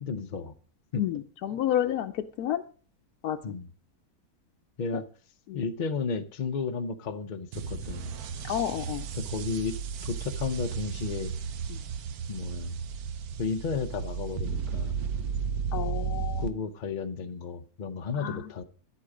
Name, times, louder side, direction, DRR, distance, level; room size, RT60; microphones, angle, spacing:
voice 1, 0.0-0.5 0.9-1.0 3.4-3.7 4.8-5.1 5.5-8.1 9.1-9.7 10.0-11.3 12.3-12.8 13.4-15.0 16.4-18.6, left 5 dB, 50° left, 7 dB, 0.5 m, -33 dB
voice 2, 1.0-2.1 2.4-2.6 3.2-3.4 5.5-5.6 8.5-9.0 15.7-16.4 18.2-18.4, left 11 dB, 80° left, 5 dB, 1.1 m, -29 dB
sound 1, 7.5-16.5, right 6 dB, 75° right, 1.3 m, -34 dB
10.5 x 8.3 x 4.9 m, 0.39 s
omnidirectional pair, 1.6 m